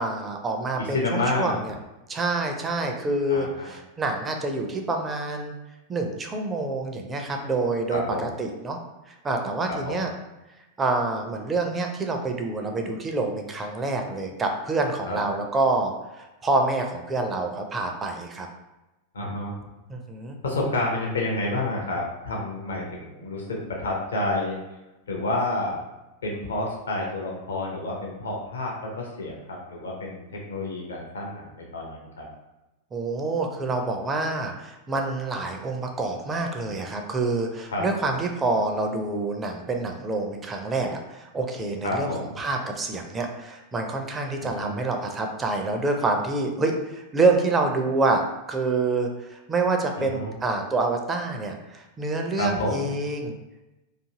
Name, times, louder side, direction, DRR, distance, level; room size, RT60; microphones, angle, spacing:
voice 1, 0.0-1.8 2.1-5.5 5.9-8.8 9.2-10.1 10.8-18.5 19.9-20.4 32.9-42.1 42.4-48.2 48.5-53.4, right 3 dB, 20° right, 3 dB, 0.4 m, -27 dB
voice 2, 0.8-1.6 3.3-3.7 7.9-8.3 9.7-10.1 15.1-15.2 19.1-19.5 20.4-24.6 25.1-25.8 26.2-32.3 37.7-38.1 41.8-42.3 44.4-44.7 50.0-50.3 52.4-52.9, left 2 dB, 65° left, -1 dB, 0.5 m, -29 dB
2.5 x 2.4 x 2.8 m, 1.0 s
figure-of-eight pair, 90°, 0 cm